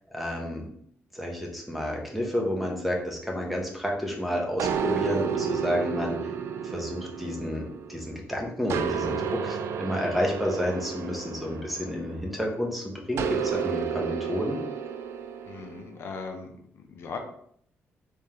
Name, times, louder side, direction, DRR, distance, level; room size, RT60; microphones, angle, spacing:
voice 1, 0.1-0.7 1.1-6.2 6.7-14.6, equal, ahead, 0 dB, 0.8 m, -30 dB
sound 1, 4.6-8.2 8.7-12.4 13.2-15.8, right 7 dB, 80° right, 0.3 m, -31 dB
voice 2, 15.5-17.2, left 4 dB, 60° left, 3 dB, 0.6 m, -39 dB
3.5 x 3.4 x 2.9 m, 0.64 s
cardioid pair, 130°, 5 cm